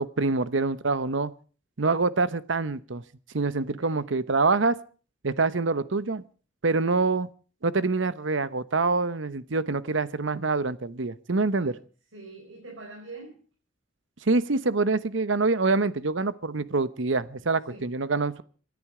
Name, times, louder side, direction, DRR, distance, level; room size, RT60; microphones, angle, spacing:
voice 1, 0.0-1.3 1.8-3.0 3.3-4.8 5.2-6.2 6.6-7.3 7.6-11.7 14.2-18.4, right 3 dB, 70° right, 16 dB, 0.9 m, -25 dB
voice 2, 12.1-13.4 17.7-17.9, right 3 dB, 85° right, 0 dB, 4.7 m, -44 dB
26.0 x 10.5 x 4.9 m, 0.40 s
head